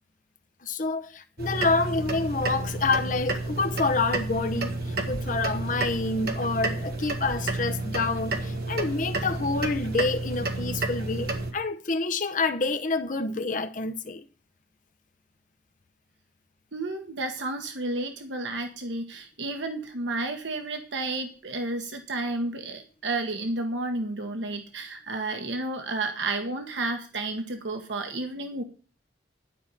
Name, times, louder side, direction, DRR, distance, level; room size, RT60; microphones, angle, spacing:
voice 1, 0.6-14.3, left 3 dB, 45° left, 0.8 m, -28 dB
sound 1, 1.4-11.5, right 2 dB, 55° right, 1.7 m, -31 dB
voice 2, 16.7-28.6, right 2 dB, 80° right, 1.2 m, -31 dB
11.0 x 5.5 x 8.7 m
head